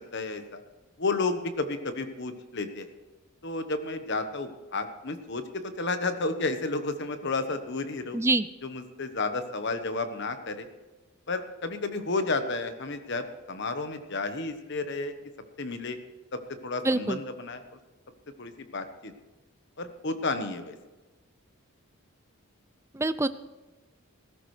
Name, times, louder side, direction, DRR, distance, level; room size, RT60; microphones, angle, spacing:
voice 1, 0.1-0.6 1.0-2.9 3.4-8.2 8.6-10.7 11.3-15.1 15.6-16.0 16.3-17.6 18.4-19.1 19.8-20.8, left 3 dB, 55° left, 9 dB, 1.2 m, -32 dB
voice 2, 8.1-8.5 16.9-17.2 23.0-23.3, right 2 dB, 15° right, 13 dB, 0.4 m, -25 dB
19.5 x 13.0 x 3.3 m, 1.2 s
head